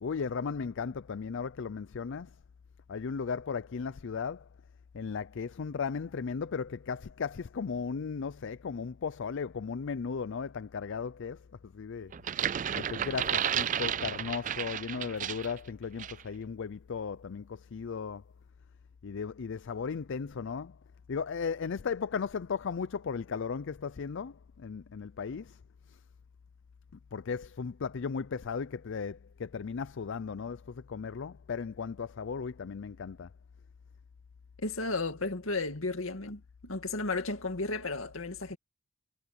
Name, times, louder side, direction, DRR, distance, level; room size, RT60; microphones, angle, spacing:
voice 1, 0.0-2.4 2.9-4.5 4.9-12.1 12.7-18.2 19.0-20.8 21.1-25.6 25.9-26.0 26.9-33.3, left 5 dB, 60° left, 0.5 m, -36 dB
sound 1, 12.1-15.6 16.0-16.2, right 9 dB, 40° right, 0.4 m, -32 dB
voice 2, 34.6-38.6, left 3 dB, 80° left, 2.2 m, -34 dB
head